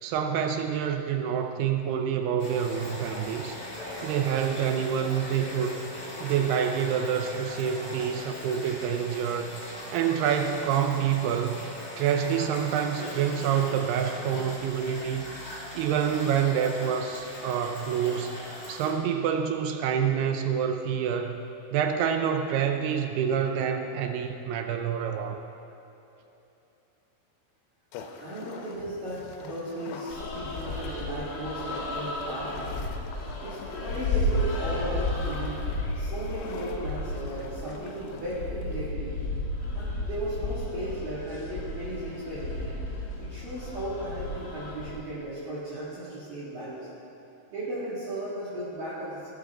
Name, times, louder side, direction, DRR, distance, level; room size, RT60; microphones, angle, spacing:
voice 1, 0.0-3.6 4.0-5.8 6.2-9.6 9.9-11.6 12.0-21.4 21.7-25.4, right 8 dB, 80° right, 6 dB, 2.3 m, -27 dB
sound 1, 2.4-18.9, equal, 20° left, 2.8 m, -40 dB
sound 2, 27.9-38.9, left 5 dB, 80° left, 3.0 m, -45 dB
voice 2, 28.2-32.9 33.4-35.6 35.9-39.2 39.7-42.7 43.2-46.9 47.5-49.3, right 1 dB, 50° right, -11 dB, 3.7 m, -36 dB
sound 3, 30.1-44.9, left 1 dB, 50° left, 1.8 m, -33 dB
20.5 x 9.5 x 3.8 m, 3.0 s
omnidirectional pair, 5.2 m